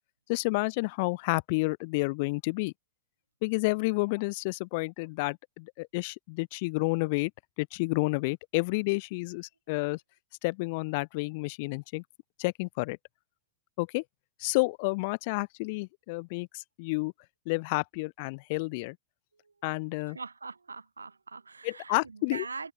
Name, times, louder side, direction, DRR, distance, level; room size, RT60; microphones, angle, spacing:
voice 1, 0.3-2.7 3.4-7.3 7.6-10.0 10.4-12.0 12.4-13.0 13.8-14.0 14.4-17.1 17.5-19.0 19.6-20.2 21.6-22.5, left 27 dB, 50° left, 0.3 m, -30 dB
voice 2, 20.1-22.7, right 4 dB, 75° right, 0.6 m, -42 dB
figure-of-eight pair, 90°, 0 cm